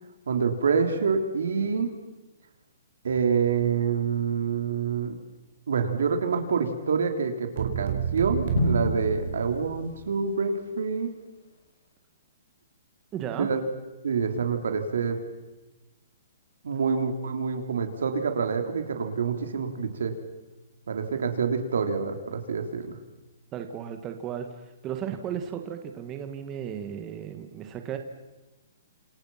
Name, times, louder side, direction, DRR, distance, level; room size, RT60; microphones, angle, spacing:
voice 1, 0.3-1.9 3.0-5.1 5.7-11.1 13.4-13.6 14.0-15.2 16.6-20.1 20.9-23.0, right 5 dB, 80° right, 5 dB, 3.9 m, -27 dB
sound 1, 7.6-10.1, right 8 dB, 50° right, 4.5 m, -30 dB
Drum, 8.6-10.6, left 3 dB, 70° left, 5.1 m, -31 dB
voice 2, 13.1-13.5 23.5-24.5 24.8-28.0, right 9 dB, 20° right, 6 dB, 1.7 m, -34 dB
28.5 x 27.5 x 5.9 m, 1.1 s
hypercardioid pair, 165°, 0 cm